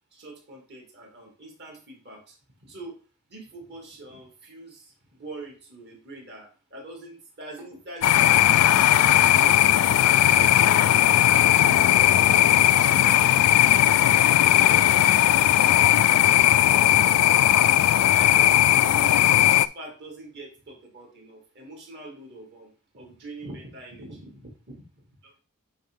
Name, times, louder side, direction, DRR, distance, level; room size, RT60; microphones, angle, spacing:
voice 1, 0.1-3.0 3.3-11.4 11.8-13.1 13.4-14.1 14.5-25.4, right 2 dB, 50° right, 0 dB, 2.5 m, -44 dB
sound 1, 8.0-19.7, left 12 dB, 80° left, 0.3 m, -18 dB
9.2 x 3.5 x 3.7 m, 0.35 s
head